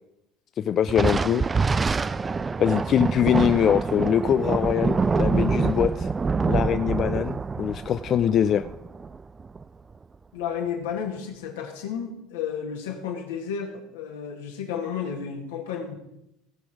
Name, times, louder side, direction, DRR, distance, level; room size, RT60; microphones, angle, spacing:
voice 1, 0.6-1.5 2.6-6.1 6.5-8.6, left 9 dB, 45° left, 11 dB, 0.4 m, -23 dB
Thunder, 0.9-9.6, right 4 dB, 25° right, 0.4 m, -26 dB
voice 2, 10.3-16.0, left 7 dB, 80° left, 2 dB, 2.1 m, -32 dB
17.5 x 6.0 x 5.0 m, 0.85 s
hypercardioid pair, 75°, 0 cm